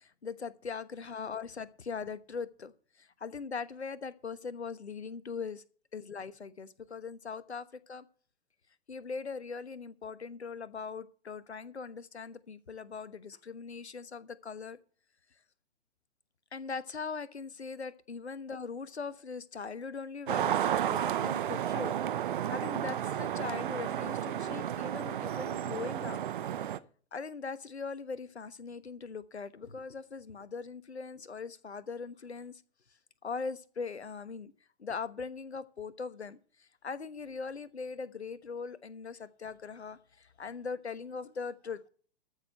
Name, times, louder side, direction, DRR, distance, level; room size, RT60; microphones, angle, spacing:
voice 1, 0.0-2.7 3.0-5.6 5.9-8.0 8.9-14.8 16.5-26.2 26.6-26.7 27.1-32.5 33.2-34.5 34.8-41.9, left 5 dB, 75° left, 1.2 m, -40 dB
sound 1, 20.3-26.8, right 10 dB, 50° right, 0.9 m, -32 dB
13.5 x 6.7 x 6.4 m
figure-of-eight pair, 120°, 33 cm